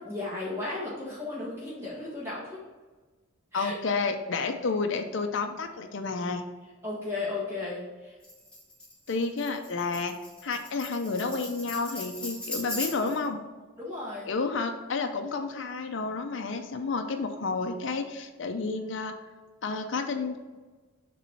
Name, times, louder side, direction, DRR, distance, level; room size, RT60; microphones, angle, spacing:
voice 1, 0.0-2.6 3.5-3.7 6.8-8.1 13.8-14.3, left 2 dB, 10° right, -7 dB, 1.5 m, -35 dB
voice 2, 3.5-6.4 9.1-10.2 10.4-13.4 14.3-19.2 19.6-20.4, left 4 dB, 60° left, 5 dB, 0.5 m, -30 dB
Tambourine, 8.2-13.3, left 2 dB, 5° left, 1.2 m, -39 dB
7.1 x 3.1 x 5.6 m, 1.3 s
head